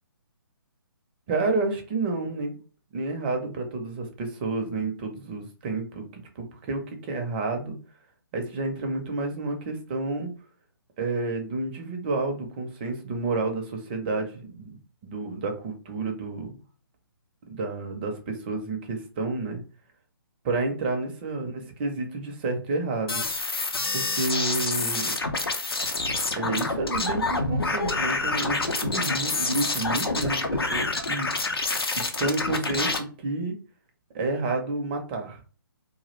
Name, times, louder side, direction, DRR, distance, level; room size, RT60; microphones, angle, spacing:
voice 1, 1.3-2.5 2.9-7.8 8.3-10.3 11.0-14.8 15.0-16.6 17.5-19.6 20.4-23.2 23.9-25.1 26.3-31.3 32.0-33.5 34.1-35.4, right 3 dB, 25° right, 4 dB, 0.5 m, -30 dB
sound 1, 23.1-33.0, left 3 dB, 80° left, 0.5 m, -27 dB
2.2 x 2.0 x 3.0 m, 0.38 s
figure-of-eight pair, 140°, 12 cm